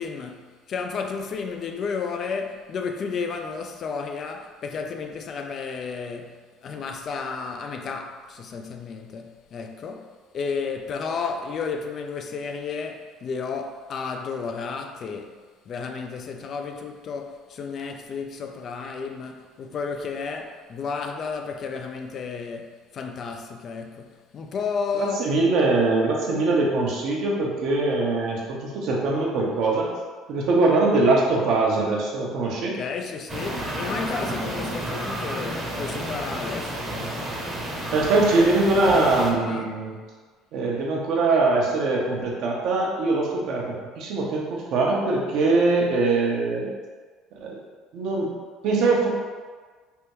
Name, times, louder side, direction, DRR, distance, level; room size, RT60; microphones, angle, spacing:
voice 1, 0.0-25.2 32.6-37.4 39.5-39.7, left 5 dB, 50° left, 0.3 m, -32 dB
voice 2, 24.9-29.9 30.3-32.7 37.9-39.9 40.5-46.7 47.3-47.6 47.9-48.3 48.6-49.1, right 3 dB, 65° right, 0.7 m, -22 dB
sound 1, 33.3-39.3, right 1 dB, 30° right, 0.8 m, -31 dB
3.4 x 2.2 x 3.0 m
supercardioid pair, 75°, 0 cm